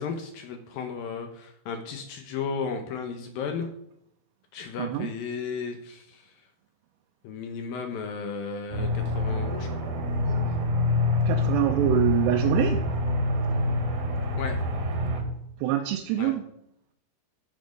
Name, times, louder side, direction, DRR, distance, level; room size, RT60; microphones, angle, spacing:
voice 1, 0.0-3.7 4.5-6.2 7.2-9.9 14.4-14.6 16.2-16.3, left 5 dB, 75° left, 5 dB, 2.3 m, -34 dB
voice 2, 4.8-5.1 11.3-12.8 15.6-16.4, right 12 dB, 80° right, 2 dB, 2.8 m, -25 dB
Aircraft, 8.7-15.2, left 2 dB, 55° right, 2.5 m, -26 dB
13.5 x 6.0 x 5.2 m, 0.76 s
omnidirectional pair, 5.1 m